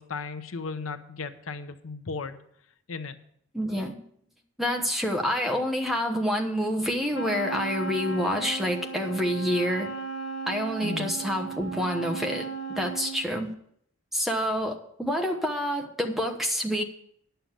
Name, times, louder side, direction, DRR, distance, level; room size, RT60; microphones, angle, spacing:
voice 1, 0.0-2.4 2.9-3.2 10.8-11.1, left 4 dB, 80° left, 10 dB, 0.8 m, -35 dB
voice 2, 3.5-4.0 4.6-9.9 10.5-12.5 12.8-13.5 14.1-16.8, equal, ahead, 2 dB, 1.0 m, -28 dB
Wind instrument woodwind instrument, 7.1-13.3, right 4 dB, 55° left, 1.1 m, -35 dB
10.5 x 6.8 x 7.3 m, 0.68 s
head